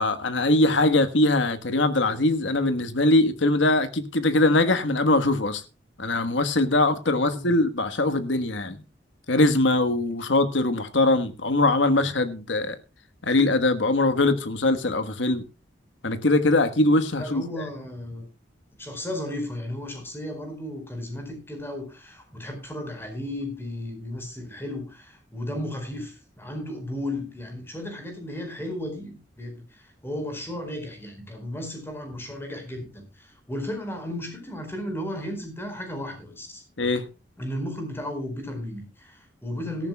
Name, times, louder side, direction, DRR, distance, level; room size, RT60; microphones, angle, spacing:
voice 1, 0.0-5.6 6.0-8.8 9.3-12.8 13.2-15.4 16.0-17.4 36.8-37.0, left 2 dB, 90° left, 1.4 m, -22 dB
voice 2, 7.2-7.5 17.2-18.3 18.8-36.6 37.4-39.9, left 1 dB, 10° left, 4.4 m, -34 dB
18.0 x 14.0 x 2.2 m
head